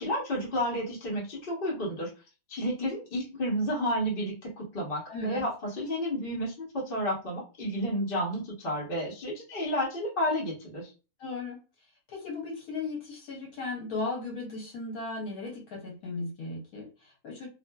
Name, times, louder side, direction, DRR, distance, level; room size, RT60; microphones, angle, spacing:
voice 1, 0.0-2.1 2.5-5.5 5.8-10.9, equal, 40° left, -3 dB, 1.1 m, -31 dB
voice 2, 5.1-5.5 11.2-11.6 12.1-17.5, left 3 dB, 75° left, -1 dB, 1.2 m, -36 dB
2.6 x 2.5 x 2.2 m, 0.32 s
omnidirectional pair, 1.6 m